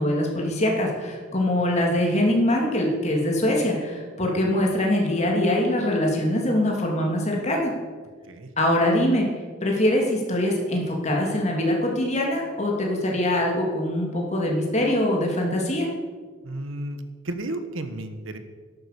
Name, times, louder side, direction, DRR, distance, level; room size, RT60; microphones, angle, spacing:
voice 1, 0.0-7.7 8.6-9.3 9.6-15.9, left 1 dB, 35° left, -1 dB, 3.1 m, -23 dB
voice 2, 16.4-18.4, right 1 dB, 70° right, 9 dB, 1.3 m, -33 dB
13.0 x 11.5 x 6.9 m, 1.5 s
head